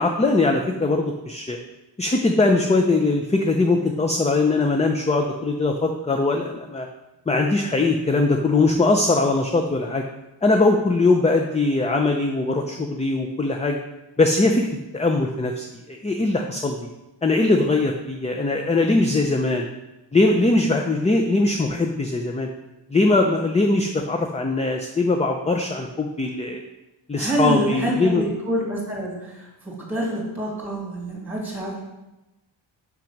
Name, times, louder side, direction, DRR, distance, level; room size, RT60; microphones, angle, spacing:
voice 1, 0.0-1.6 2.0-6.9 7.3-10.0 10.4-13.8 14.2-14.7 14.9-16.9 17.2-19.7 20.1-22.5 22.9-26.6 27.1-28.2, left 2 dB, 15° left, 3 dB, 0.4 m, -21 dB
voice 2, 27.1-31.8, right 1 dB, 5° right, -3 dB, 2.3 m, -26 dB
5.9 x 5.2 x 5.9 m, 0.99 s
wide cardioid pair, 140°, 46 cm